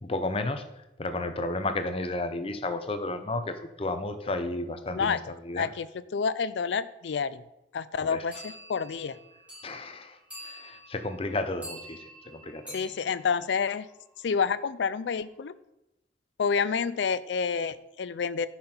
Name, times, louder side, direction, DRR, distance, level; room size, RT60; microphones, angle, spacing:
voice 1, 0.0-0.6 1.0-5.2 5.5-5.7 8.0-8.2 9.6-10.2 10.4-12.0 12.3-12.8, left 2 dB, 30° left, 8 dB, 0.7 m, -32 dB
voice 2, 5.6-7.4 7.7-9.2 12.7-13.9 14.2-15.5 16.4-18.5, left 6 dB, 80° left, 15 dB, 0.4 m, -29 dB
sound 1, 8.3-14.2, right 1 dB, 10° right, 2.7 m, -47 dB
10.0 x 5.7 x 4.4 m, 0.89 s
head